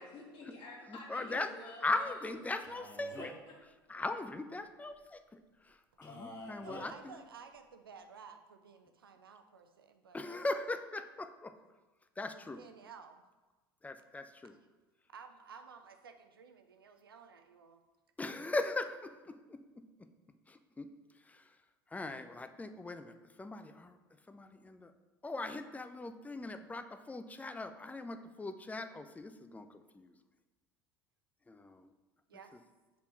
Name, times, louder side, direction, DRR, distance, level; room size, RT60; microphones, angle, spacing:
voice 1, 0.0-2.3, left 2 dB, 50° left, -3 dB, 2.3 m, -49 dB
voice 2, 0.9-1.5 1.8-3.3 3.9-5.2 6.0-7.1 10.1-11.5 12.2-12.6 13.8-14.5 18.2-19.6 20.5-20.9 21.9-24.0 24.3-24.9 25.2-29.7 29.9-30.1 31.5-31.9, left 2 dB, 10° left, 9 dB, 0.5 m, -39 dB
Male speech man speaking, 2.6-3.5 6.0-6.9, left 2 dB, 30° left, 2.2 m, -47 dB
voice 3, 6.6-10.5 12.3-13.2 14.4-14.6 15.1-17.8 32.3-32.5, right 6 dB, 80° right, 7 dB, 0.6 m, -54 dB
5.2 x 4.5 x 5.7 m, 1.2 s
figure-of-eight pair, 65°, 12 cm